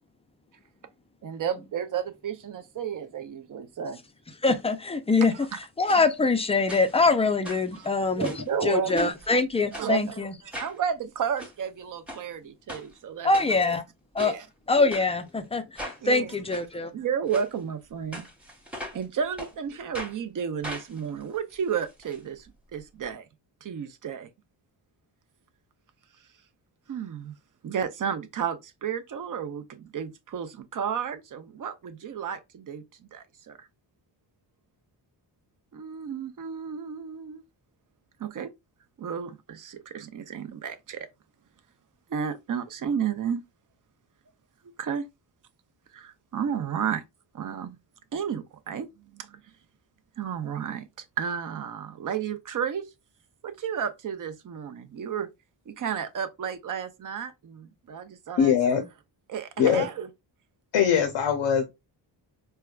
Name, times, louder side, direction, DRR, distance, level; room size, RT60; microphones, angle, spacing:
voice 1, 1.2-4.0 7.7-7.9 8.2-9.1 9.7-10.2 10.6-13.3 13.6-13.8 14.2-14.5 16.0-16.4 16.9-18.3 18.9-23.3 23.6-24.3 26.9-27.4 27.6-32.8 33.1-33.7 35.7-37.4 38.2-38.5 39.0-41.1 42.1-43.4 44.8-45.1 45.9-47.0 47.3-47.8 48.1-49.4 50.2-52.9 53.4-55.3 55.7-58.5 59.3-60.1, right 7 dB, 45° right, 0.5 m, -32 dB
voice 2, 4.4-8.3 8.6-10.3 13.2-13.8 14.1-14.4 14.7-16.9, left 3 dB, 15° left, 0.3 m, -24 dB
sound 1, 5.8-6.0 6.7-7.1 7.4-8.5 8.9-9.3 9.7-9.9 10.5-10.8 11.2-11.5 12.1-12.2 12.7-12.8 13.3-13.8 14.2-14.3 14.9-15.1 15.7-16.0 16.5-16.6 17.3-17.5 18.1-19.0 19.4-19.5 19.9-20.2 20.6-22.2 22.5-22.6 22.8-22.9, equal, 5° right, 0.9 m, -39 dB
voice 3, 58.4-58.8 59.6-59.9 60.7-61.7, left 8 dB, 85° left, 0.7 m, -21 dB
4.5 x 2.2 x 2.2 m
cardioid pair, 100°, 47 cm